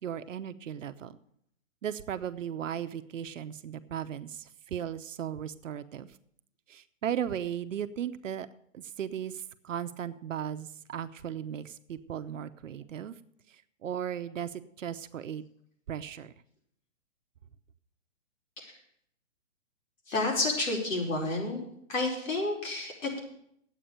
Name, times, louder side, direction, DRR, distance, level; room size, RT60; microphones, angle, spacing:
voice 1, 0.0-1.2 1.8-6.1 6.7-8.5 8.7-13.2 13.5-15.4 15.9-16.3, right 9 dB, 80° right, 11 dB, 0.9 m, -36 dB
voice 2, 20.1-21.6 21.9-23.2, left 2 dB, 90° left, -1 dB, 4.8 m, -30 dB
10.5 x 8.4 x 6.8 m, 0.69 s
hypercardioid pair, 160°, 38 cm